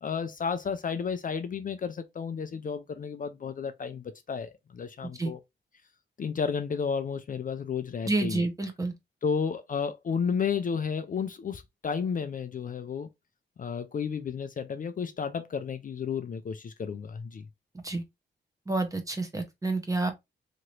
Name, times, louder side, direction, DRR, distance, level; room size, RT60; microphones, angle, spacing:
voice 1, 0.0-5.4 6.2-8.4 9.2-13.1 13.6-17.5, left 6 dB, 45° left, 0.4 m, -32 dB
voice 2, 8.0-8.9 17.8-18.0 18.7-20.1, right 2 dB, 15° right, 0.8 m, -29 dB
2.9 x 2.6 x 3.0 m
wide cardioid pair, 130°, 20 cm